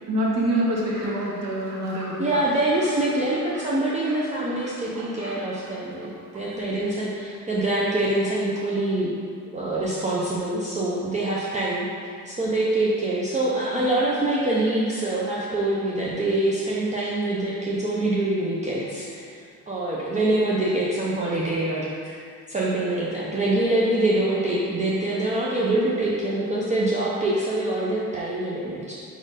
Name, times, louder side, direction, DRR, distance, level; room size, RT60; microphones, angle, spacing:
voice 1, 0.1-2.4 13.7-13.8, right 1 dB, 50° right, -4 dB, 1.4 m, -26 dB
Fowl / Bird, 0.7-6.9, right 1 dB, 65° right, 1.4 m, -44 dB
voice 2, 2.2-9.1 9.5-11.9 12.2-19.4 19.7-22.2 22.5-28.9, right 1 dB, 20° right, -6 dB, 0.6 m, -25 dB
5.0 x 4.4 x 4.9 m, 2.3 s
cardioid pair, 150°, 34 cm